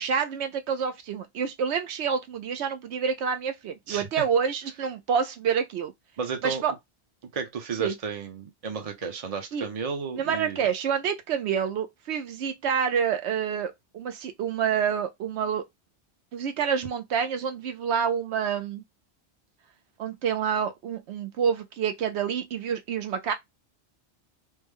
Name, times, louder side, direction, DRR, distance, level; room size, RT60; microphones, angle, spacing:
voice 1, 0.0-5.9 6.4-6.7 7.8-7.9 9.5-9.7 10.1-15.6 16.3-18.8 20.0-23.3, right 7 dB, 75° right, 0.9 m, -28 dB
voice 2, 3.9-4.2 6.2-6.6 7.3-10.6, right 5 dB, 40° right, 0.7 m, -33 dB
3.2 x 2.1 x 3.5 m
omnidirectional pair, 1.2 m